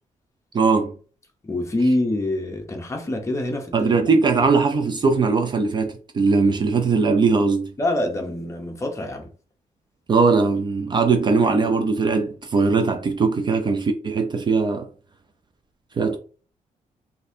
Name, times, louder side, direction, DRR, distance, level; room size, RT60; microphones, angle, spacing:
voice 1, 0.5-0.9 3.7-7.7 10.1-14.9 16.0-16.2, right 4 dB, 35° right, 0.4 m, -20 dB
voice 2, 1.4-3.9 7.8-9.3, left 1 dB, 20° left, 0.8 m, -25 dB
4.0 x 2.7 x 2.6 m
cardioid pair, 135°, 13 cm